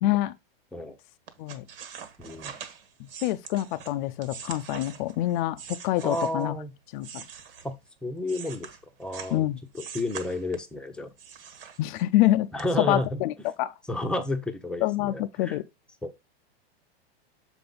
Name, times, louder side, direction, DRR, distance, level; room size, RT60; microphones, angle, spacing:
voice 1, 0.0-0.3 1.4-1.6 3.2-6.6 6.9-7.2 9.3-9.6 11.8-12.5 12.8-13.7 14.8-15.7, left 15 dB, 50° left, 0.5 m, -26 dB
sound 1, 1.3-6.5 7.0-9.4 9.7-10.8 11.2-12.2 12.6-12.7, right 7 dB, 65° right, 1.6 m, -43 dB
voice 2, 2.2-2.5 6.0-6.7 7.6-8.7 9.0-9.5 9.7-11.1 12.5-13.2 13.9-15.6 16.0-16.2, left 1 dB, 5° left, 0.8 m, -31 dB
7.0 x 4.6 x 3.8 m
hypercardioid pair, 130°, 31 cm